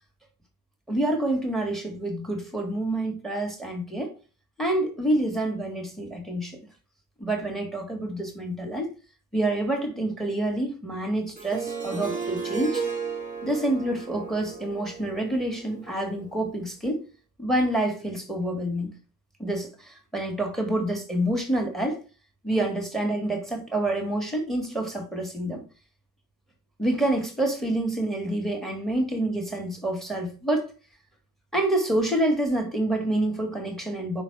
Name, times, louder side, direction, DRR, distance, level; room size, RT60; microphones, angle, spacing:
voice 1, 0.9-4.1 4.6-6.6 7.2-8.9 9.3-12.8 13.4-17.0 17.4-18.9 19.4-22.0 22.4-25.6 26.8-30.7 31.5-34.2, right 1 dB, ahead, 2.3 m, -27 dB
Harp, 11.3-16.3, right 5 dB, 20° right, 2.2 m, -34 dB
5.8 x 3.9 x 4.9 m
cardioid pair, 80°, 36 cm